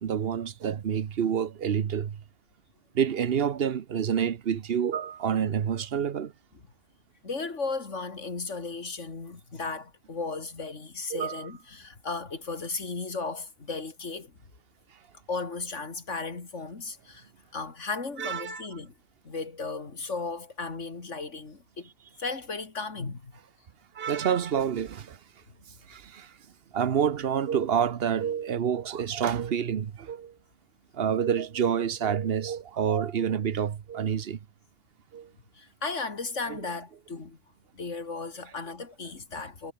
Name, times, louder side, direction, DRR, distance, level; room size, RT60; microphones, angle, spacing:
voice 1, 0.0-2.2 2.9-6.3 11.1-11.5 18.2-18.6 24.0-25.2 25.9-26.3 26.7-30.3 30.9-34.4 35.1-35.3, right 8 dB, 60° right, 1.1 m, -28 dB
voice 2, 7.2-14.3 15.3-18.9 19.2-21.9 22.2-23.3 35.6-37.4 37.8-39.7, left 4 dB, 90° left, 3.0 m, -35 dB
omnidirectional pair, 1.2 m